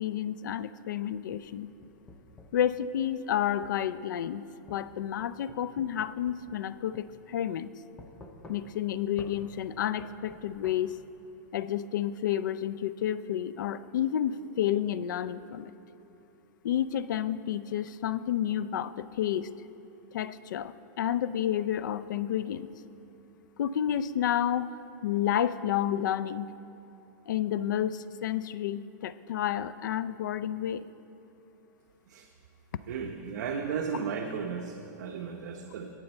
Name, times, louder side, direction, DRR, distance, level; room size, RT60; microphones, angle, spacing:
voice 1, 0.0-1.7 2.5-4.4 4.7-7.7 8.5-11.0 11.5-15.7 16.6-19.5 20.1-22.7 23.6-24.7 25.0-26.5 27.3-30.8, left 10 dB, 80° left, 16 dB, 0.4 m, -30 dB
sound 1, 1.3-2.7 3.6-3.8 4.7-6.7 6.9-7.1 8.0-8.9 9.2-9.4 10.0-10.8, left 2 dB, 10° left, 0.6 m, -50 dB
voice 2, 32.9-35.9, right 6 dB, 70° right, 2 dB, 0.8 m, -35 dB
18.0 x 6.9 x 4.4 m, 2.9 s
supercardioid pair, 160°, 10 cm